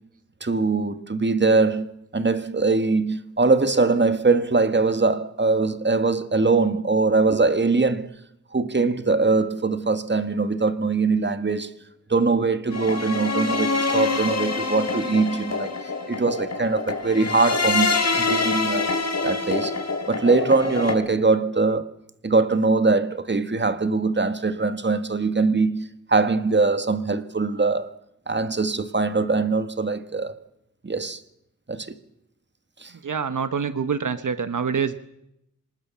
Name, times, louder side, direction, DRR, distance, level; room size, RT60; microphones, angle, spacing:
voice 1, 0.4-8.1 8.5-11.7 12.1-15.7 16.1-18.9 19.2-19.7 20.1-21.9 22.2-27.9 28.3-30.4 30.8-31.2 31.7-31.9 32.8-32.9, right 3 dB, 35° right, 1.7 m, -22 dB
sound 1, 12.7-20.9, left 4 dB, 55° left, 4.0 m, -26 dB
voice 2, 33.0-34.9, right 6 dB, 75° right, 1.1 m, -25 dB
26.0 x 20.0 x 7.3 m
wide cardioid pair, 70°, 31 cm